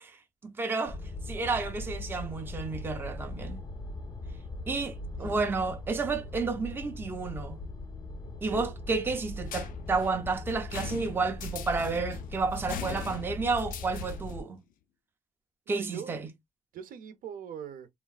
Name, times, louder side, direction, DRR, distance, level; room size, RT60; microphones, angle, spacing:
voice 1, 0.4-1.0 1.2-3.6 4.7-7.6 8.4-14.6 15.7-16.3, right 4 dB, 15° right, 0.4 m, -31 dB
sound 1, 0.9-14.4, left 2 dB, 30° left, 0.6 m, -40 dB
sound 2, 9.5-14.4, left 10 dB, 85° left, 0.5 m, -42 dB
voice 2, 15.7-16.2 16.7-17.9, right 8 dB, 85° right, 0.7 m, -42 dB
3.6 x 2.4 x 2.3 m
cardioid pair, 160°, 14 cm